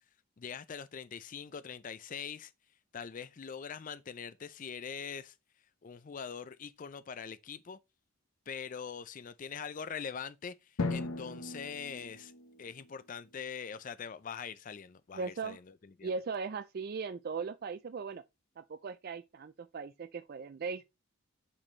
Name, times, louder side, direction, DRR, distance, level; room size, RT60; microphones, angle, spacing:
voice 1, 0.4-2.5 2.9-5.4 5.8-7.8 8.5-12.3 12.6-16.1, left 6 dB, 35° left, 0.4 m, -43 dB
Drum, 10.8-13.3, left 3 dB, 70° left, 0.8 m, -38 dB
voice 2, 15.1-15.6 16.0-18.2 18.6-20.8, right 5 dB, 45° right, 0.3 m, -38 dB
8.8 x 4.3 x 3.2 m
head